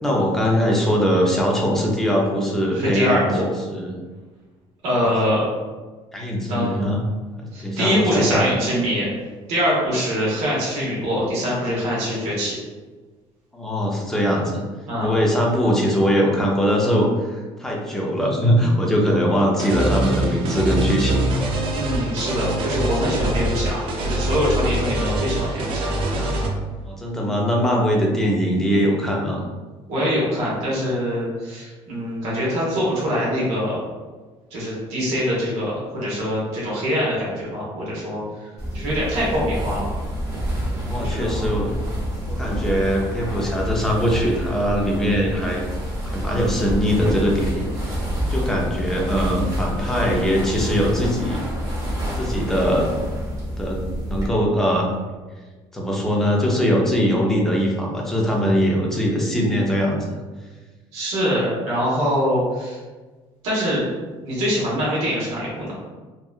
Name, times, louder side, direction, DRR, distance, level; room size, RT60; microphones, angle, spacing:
voice 1, 0.0-3.3 3.7-4.0 6.1-7.0 7.4-8.4 13.5-14.6 15.0-21.3 26.9-29.4 40.8-41.7 42.3-45.6 46.0-51.4 52.1-52.9 53.6-54.9 55.7-60.2, equal, 5° left, -2 dB, 0.4 m, -21 dB
voice 2, 2.7-3.4 4.8-5.4 6.5-6.8 7.5-9.1 9.5-12.6 14.9-15.1 21.7-26.5 29.9-33.8 34.5-38.2 38.7-39.9 40.9-41.4 60.9-62.8 63.4-63.8 64.2-65.7, equal, 80° right, -6 dB, 1.0 m, -23 dB
sound 1, 19.6-26.5, right 1 dB, 55° right, 0.4 m, -24 dB
sound 2, 38.6-54.3, equal, 35° right, 0.8 m, -27 dB
2.8 x 2.2 x 2.3 m, 1.3 s
cardioid pair, 150°, 11 cm